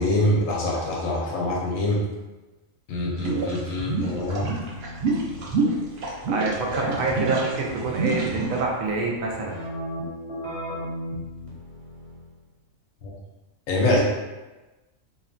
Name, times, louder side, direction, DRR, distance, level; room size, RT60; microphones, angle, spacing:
voice 1, 0.0-2.0 2.9-4.5 13.0-13.1 13.7-14.0, left 1 dB, 85° left, -3 dB, 1.1 m, -24 dB
sound 1, 3.2-8.6, right 3 dB, 60° right, 0.7 m, -27 dB
Keyboard (musical), 4.0-12.4, left 1 dB, 35° left, 0.6 m, -38 dB
voice 2, 6.0-9.6, right 3 dB, 85° right, -1 dB, 1.0 m, -27 dB
2.8 x 2.2 x 2.5 m, 1.1 s
omnidirectional pair, 1.4 m